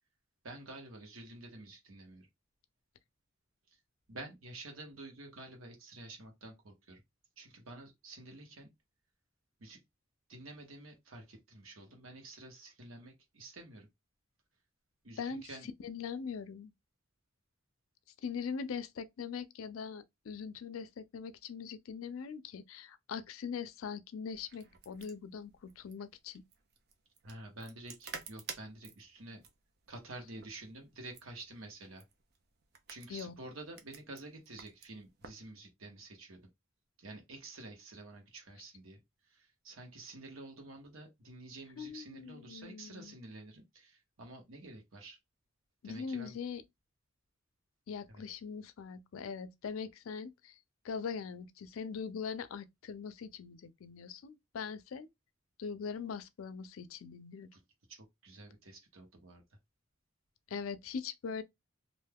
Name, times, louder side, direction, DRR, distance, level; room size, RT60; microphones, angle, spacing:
voice 1, 0.4-2.3 3.7-3.8 4.1-7.0 7.4-8.7 9.6-9.8 10.3-13.9 15.0-15.7 27.2-29.4 29.9-32.0 32.9-36.5 37.0-39.0 39.2-45.2 45.8-46.4 48.1-48.2 57.5-57.6 57.9-59.4, right 2 dB, 80° right, 1.1 m, -49 dB
voice 2, 15.2-16.7 18.2-26.4 33.1-33.4 41.8-43.2 45.8-46.6 47.9-50.6 50.8-55.1 55.6-57.5 60.5-61.4, left 6 dB, 85° left, 0.4 m, -41 dB
sound 1, 24.3-35.5, right 5 dB, 50° right, 0.6 m, -52 dB
2.5 x 2.2 x 3.4 m
head